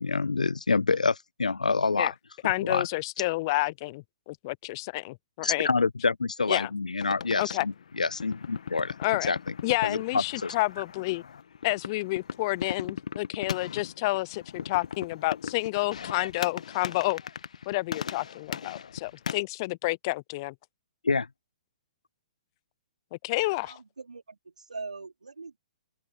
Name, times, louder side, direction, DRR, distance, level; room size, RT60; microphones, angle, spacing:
voice 1, 0.0-2.1 2.4-2.9 5.4-8.9 9.3-9.5 9.8-10.5 21.0-21.3, left 4 dB, 80° left, 0.5 m, -27 dB
voice 2, 2.4-5.7 6.5-6.7 7.4-7.7 9.0-9.3 9.6-11.2 11.6-17.2 17.7-20.5 23.1-23.7, left 21 dB, 35° left, 0.7 m, -29 dB
sound 1, 7.0-19.4, left 7 dB, 65° left, 1.5 m, -39 dB
voice 3, 23.5-25.6, right 4 dB, 80° right, 4.2 m, -42 dB
open air
figure-of-eight pair, 125°, 4 cm